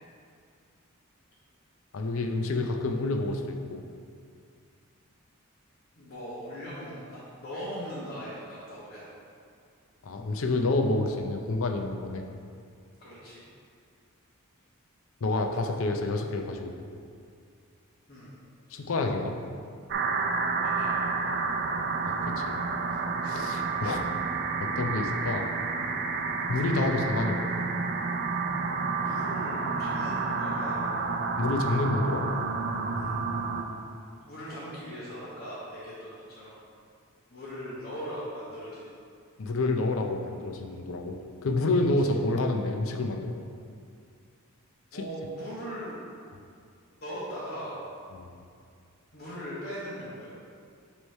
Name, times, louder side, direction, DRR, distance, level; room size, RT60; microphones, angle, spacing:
voice 1, 1.9-3.4 3.7-3.8 10.0-12.2 15.2-17.0 18.7-19.3 22.0-24.1 24.6-25.4 26.5-27.7 31.4-32.3 39.4-41.2 41.4-43.3 44.9-45.0 48.1-48.3, left 2 dB, 65° left, 4 dB, 0.6 m, -29 dB
voice 2, 6.0-9.0 13.0-13.4 18.1-18.3 20.6-21.0 29.0-30.8 32.9-33.2 34.2-36.6 37.3-38.9 41.8-41.9 44.9-46.0 47.0-47.8 49.1-50.3, equal, 50° left, -10 dB, 1.2 m, -39 dB
sound 1, 19.9-33.6, right 4 dB, 50° right, 0.5 m, -30 dB
6.3 x 3.2 x 5.4 m, 2.3 s
head